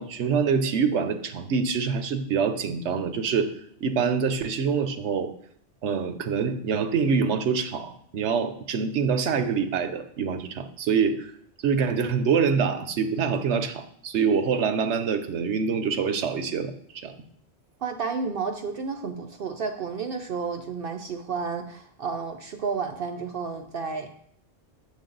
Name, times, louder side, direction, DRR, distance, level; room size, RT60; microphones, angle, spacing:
voice 1, 0.0-3.5 3.8-5.3 5.8-11.3 11.6-17.1, right 6 dB, 90° right, 9 dB, 1.1 m, -25 dB
voice 2, 17.8-24.1, right 5 dB, 60° right, 6 dB, 0.8 m, -31 dB
7.2 x 6.8 x 3.9 m, 0.65 s
omnidirectional pair, 1.1 m